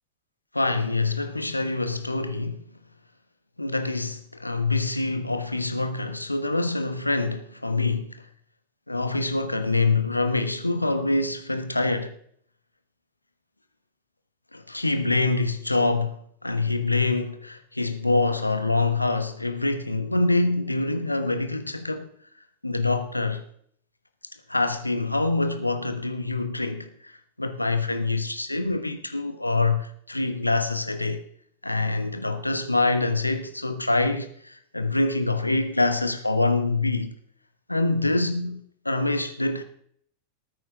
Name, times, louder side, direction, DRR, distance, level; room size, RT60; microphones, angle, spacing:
voice 1, 0.5-2.6 3.6-8.2 8.9-12.1 14.5-22.1 22.6-23.4 24.5-31.2 31.6-37.1 37.7-39.6, left 3 dB, 85° left, 1.0 m, -25 dB
19.5 x 9.1 x 3.7 m
figure-of-eight pair, 90°, 0 cm